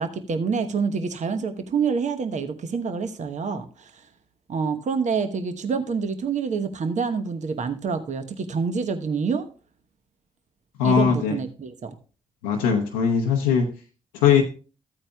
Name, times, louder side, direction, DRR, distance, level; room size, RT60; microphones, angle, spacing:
voice 1, 0.0-4.1 4.5-9.5 10.8-12.0, right 5 dB, 50° right, 8 dB, 1.0 m, -27 dB
voice 2, 10.8-11.4 12.4-13.7 14.1-14.4, left 7 dB, 85° left, 2 dB, 0.8 m, -20 dB
14.0 x 8.6 x 2.3 m, 0.36 s
hypercardioid pair, 40°, 15 cm